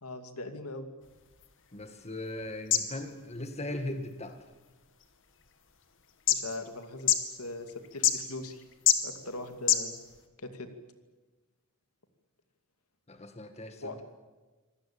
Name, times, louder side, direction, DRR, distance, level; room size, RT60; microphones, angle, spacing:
voice 1, 0.0-0.9 6.3-8.6 9.0-10.0 10.4-10.7 13.8-14.0, left 2 dB, 80° left, 7 dB, 2.5 m, -40 dB
sound 1, 1.0-10.3, left 10 dB, 60° left, 2.2 m, -33 dB
voice 2, 1.7-4.4 13.1-14.0, left 1 dB, 30° left, 7 dB, 1.8 m, -39 dB
25.5 x 18.0 x 8.9 m, 1.3 s
head